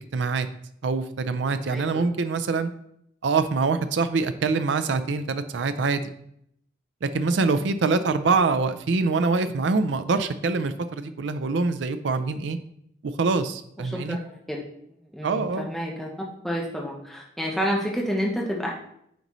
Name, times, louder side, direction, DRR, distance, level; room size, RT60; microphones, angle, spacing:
voice 1, 0.1-0.5 0.8-2.7 3.2-6.1 7.0-12.6 13.0-14.2 15.2-15.7, right 4 dB, 85° right, 10 dB, 0.5 m, -24 dB
voice 2, 15.1-18.7, equal, ahead, -3 dB, 0.8 m, -29 dB
9.3 x 3.9 x 3.1 m, 0.72 s
head